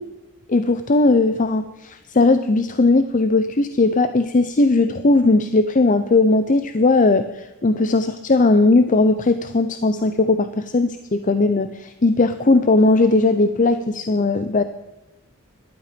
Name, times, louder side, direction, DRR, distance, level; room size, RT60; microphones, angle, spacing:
voice 1, 0.5-14.6, left 3 dB, 35° left, 10 dB, 0.6 m, -18 dB
15.0 x 12.0 x 5.1 m, 1.1 s
head